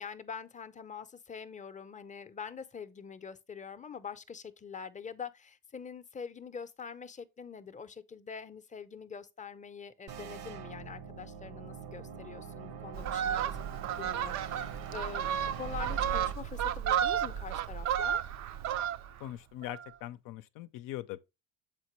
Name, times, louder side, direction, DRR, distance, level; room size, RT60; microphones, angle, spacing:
voice 1, 0.0-13.6 14.0-18.2, left 6 dB, 20° left, 0.6 m, -44 dB
sound 1, 10.1-16.3, right 7 dB, 70° right, 1.0 m, -44 dB
Fowl, 12.9-19.3 19.6-19.9, right 9 dB, 55° right, 0.5 m, -32 dB
voice 2, 19.2-21.2, left 14 dB, 70° left, 0.6 m, -41 dB
7.5 x 4.3 x 3.0 m
cardioid pair, 95°, 33 cm